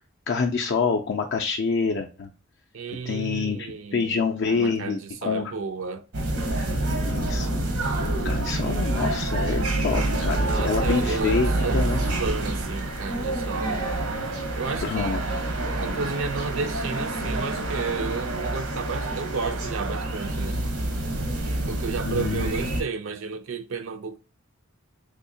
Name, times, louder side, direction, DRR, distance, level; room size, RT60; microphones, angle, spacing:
voice 1, 0.3-2.3 3.1-5.5 6.8-7.6 8.2-12.0 14.8-15.2 22.1-22.5, left 5 dB, 50° left, 0.4 m, -27 dB
voice 2, 2.7-4.2 4.5-6.1 10.4-11.8 12.2-13.8 14.6-15.2 15.8-20.6 21.7-24.2, right 4 dB, 60° right, 0.4 m, -32 dB
sound 1, 6.1-22.8, right 1 dB, 80° right, 0.9 m, -27 dB
3.6 x 2.8 x 2.6 m
head